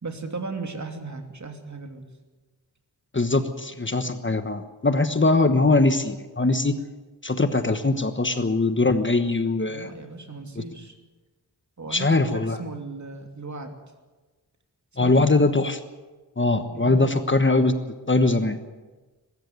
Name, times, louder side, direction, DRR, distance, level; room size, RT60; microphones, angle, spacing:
voice 1, 0.0-2.1 9.7-10.9 11.8-13.8 15.0-15.3 16.7-17.2, right 3 dB, 45° right, 4 dB, 2.8 m, -36 dB
voice 2, 3.1-6.8 7.2-9.9 10.6-10.7 11.9-12.6 15.0-15.8 16.4-17.7 18.1-18.6, left 3 dB, 30° left, 9 dB, 1.2 m, -21 dB
22.5 x 13.5 x 9.4 m, 1.3 s
wide cardioid pair, 90°, 39 cm